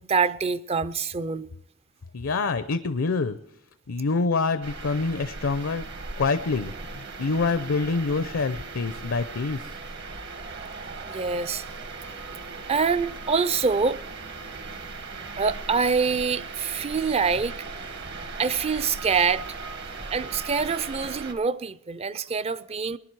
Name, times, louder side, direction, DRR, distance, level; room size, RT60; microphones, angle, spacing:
voice 1, 0.1-1.5 11.1-11.6 12.7-14.0 15.3-17.6 18.4-19.6 20.1-23.0, right 5 dB, 30° right, 0.4 m, -25 dB
voice 2, 2.1-3.4 3.9-5.8 6.2-9.6, left 4 dB, 75° left, 0.6 m, -26 dB
sound 1, 4.6-21.3, right 3 dB, 55° right, 1.3 m, -38 dB
19.5 x 10.5 x 4.7 m
head